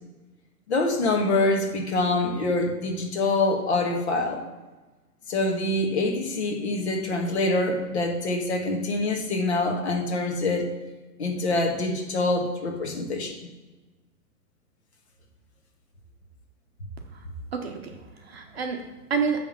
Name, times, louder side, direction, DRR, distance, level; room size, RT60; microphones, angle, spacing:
voice 1, 0.7-4.4 5.3-10.7 11.2-13.3, left 2 dB, 40° left, 2 dB, 1.6 m, -25 dB
voice 2, 17.5-19.4, right 5 dB, 40° right, 3 dB, 1.0 m, -29 dB
9.6 x 3.5 x 7.0 m, 1.2 s
hypercardioid pair, 175°, 48 cm